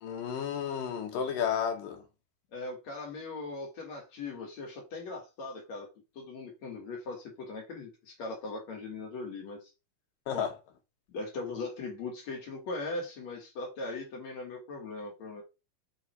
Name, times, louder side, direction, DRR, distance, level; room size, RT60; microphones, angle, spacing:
voice 1, 0.0-2.0 10.3-10.5, left 8 dB, 75° left, 3.1 m, -32 dB
voice 2, 2.5-5.9 6.2-9.7 10.3-10.5 11.1-15.4, left 3 dB, 55° left, 3.5 m, -39 dB
7.9 x 3.9 x 4.6 m
omnidirectional pair, 3.9 m